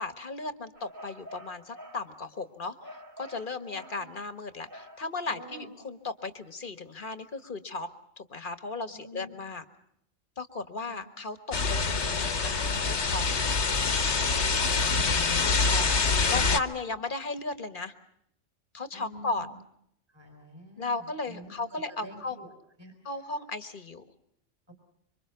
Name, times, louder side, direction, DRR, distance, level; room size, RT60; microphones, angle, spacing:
voice 1, 0.0-2.8 3.2-7.9 8.2-9.6 10.4-13.3 15.4-15.8 16.3-17.9 18.7-19.5 20.8-22.4 23.1-24.0, left 3 dB, 45° left, 10 dB, 1.6 m, -36 dB
sound 1, 0.8-2.1 2.8-4.1 4.7-5.1, equal, 45° right, 4.4 m, -47 dB
voice 2, 3.6-4.1 5.2-5.7 8.9-9.3 10.9-11.0 14.2-14.9 18.9-19.6 20.1-22.5 22.8-22.9 24.7-24.8, equal, 20° right, 4 dB, 3.9 m, -48 dB
sound 2, 11.5-16.6, left 4 dB, 65° left, 1.6 m, -25 dB
26.5 x 25.0 x 5.8 m, 0.73 s
omnidirectional pair, 1.3 m